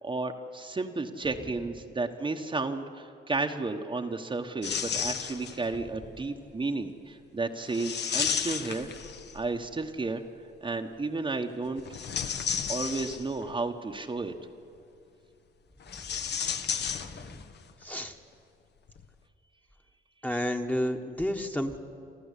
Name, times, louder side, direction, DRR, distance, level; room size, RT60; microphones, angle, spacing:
voice 1, 0.0-8.9 9.3-10.2 10.6-11.8 12.7-14.3, right 3 dB, 25° right, 4 dB, 1.2 m, -32 dB
sound 1, 4.6-5.7 7.7-9.5 11.8-13.5 15.8-17.6 17.8-17.9 18.9-19.0, left 7 dB, 60° left, 1.2 m, -33 dB
voice 2, 17.0-17.4 17.8-18.1 20.2-21.8, left 1 dB, 10° left, 5 dB, 1.4 m, -31 dB
28.0 x 13.5 x 8.3 m, 2.6 s
cardioid pair, 90°, 20 cm